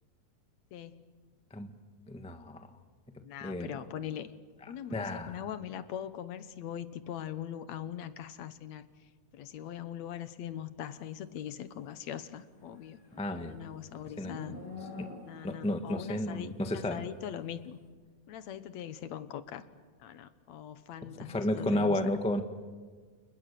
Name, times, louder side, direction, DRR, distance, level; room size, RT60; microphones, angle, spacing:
voice 1, 0.7-1.0 3.2-4.3 4.7-8.9 9.3-13.0 13.4-14.6 15.2-17.8 18.3-19.6 20.0-22.0, left 10 dB, 70° left, 12 dB, 2.2 m, -41 dB
voice 2, 2.1-2.7 3.4-3.7 4.9-5.4 13.2-13.5 14.2-14.3 15.0-15.1 15.4-17.0 21.2-22.4, left 1 dB, 5° left, 7 dB, 0.5 m, -32 dB
Livestock farm animals working animals, 12.4-15.6, left 2 dB, 45° left, 7.5 m, -47 dB
30.0 x 29.0 x 6.8 m, 1.5 s
omnidirectional pair, 3.3 m